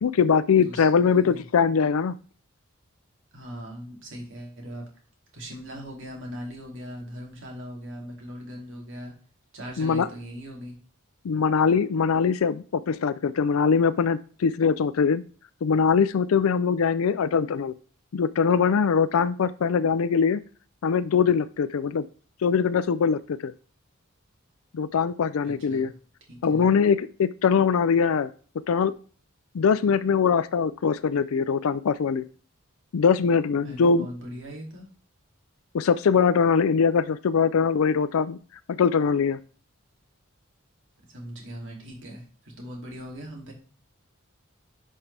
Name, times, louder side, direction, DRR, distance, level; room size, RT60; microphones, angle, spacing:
voice 1, 0.0-2.2 9.8-10.1 11.2-15.2 15.6-17.7 18.1-20.4 20.8-22.0 22.4-23.5 24.7-25.9 26.4-28.3 28.7-28.9 29.5-32.2 32.9-34.1 35.7-38.4 38.7-39.4, left 6 dB, 75° left, 15 dB, 0.4 m, -22 dB
voice 2, 0.6-1.4 3.3-4.9 5.3-9.1 9.5-10.7 25.4-25.9 26.3-26.7 33.6-34.9 41.1-43.5, equal, 60° right, 0 dB, 2.7 m, -40 dB
10.5 x 5.5 x 3.4 m, 0.41 s
head